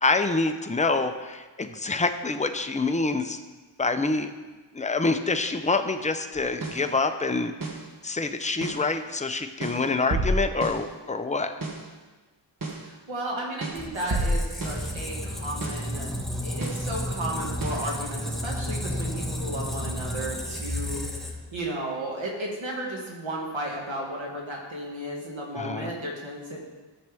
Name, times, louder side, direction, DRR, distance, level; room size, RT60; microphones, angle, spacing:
voice 1, 0.0-3.4 3.8-4.3 4.7-7.5 8.0-11.5 25.6-25.9, left 3 dB, 15° left, 7 dB, 0.6 m, -26 dB
sound 1, 6.4-6.9 7.6-7.9 8.6-8.9 9.6-10.9 11.6-11.9 12.6-12.9 13.6-14.9 15.6-15.9 16.6-16.9 17.6-17.9, right 1 dB, 45° right, 1.2 m, -30 dB
voice 2, 12.7-16.1 16.4-26.6, right 1 dB, 85° right, -2 dB, 1.9 m, -34 dB
Squeak, 13.8-21.6, equal, ahead, 1.1 m, -32 dB
12.5 x 6.6 x 3.5 m, 1.3 s
wide cardioid pair, 55°, 46 cm